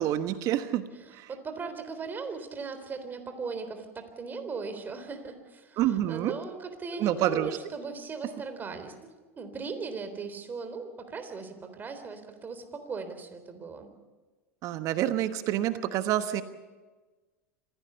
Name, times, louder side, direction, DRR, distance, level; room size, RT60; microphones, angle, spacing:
voice 1, 0.0-0.8 1.2-1.3 5.8-6.3 7.0-7.5 14.6-16.4, right 12 dB, 50° right, 11 dB, 1.2 m, -27 dB
voice 2, 0.9-8.9 9.4-13.9, right 4 dB, 25° right, 8 dB, 3.7 m, -38 dB
26.0 x 16.5 x 6.9 m, 1.3 s
hypercardioid pair, 90°, 7 cm